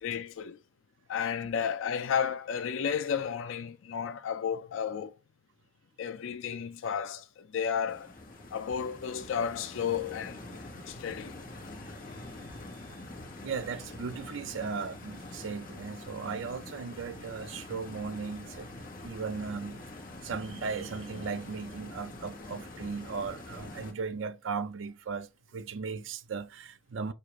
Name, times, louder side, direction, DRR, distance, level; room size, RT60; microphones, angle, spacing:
voice 1, 0.0-0.6 1.1-5.2 6.0-8.1 8.5-10.4 10.9-11.4, left 7 dB, 70° left, 0.4 m, -32 dB
Stream, 7.9-23.9, left 2 dB, 40° left, 1.2 m, -45 dB
voice 2, 13.4-18.7 19.0-19.8 20.2-27.1, right 5 dB, 65° right, 0.5 m, -37 dB
6.4 x 2.4 x 2.9 m
head